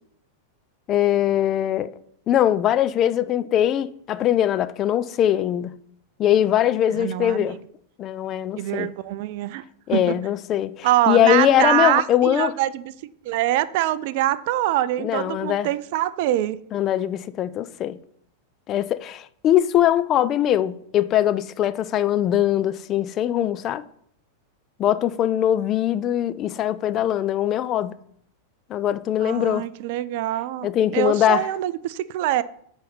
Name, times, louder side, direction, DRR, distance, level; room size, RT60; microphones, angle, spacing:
voice 1, 0.9-1.9 2.3-5.7 6.2-7.6 8.0-8.9 9.9-12.5 15.0-15.7 16.7-18.0 18.7-23.8 24.8-28.0 28.7-29.7 30.6-31.5, left 11 dB, 30° left, 0.3 m, -21 dB
voice 2, 6.9-7.6 8.6-9.6 9.9-10.2 10.8-12.9 13.2-16.6 29.2-30.7 30.9-32.4, right 14 dB, 50° right, 0.3 m, -24 dB
8.9 x 3.9 x 4.1 m
figure-of-eight pair, 90°, 0 cm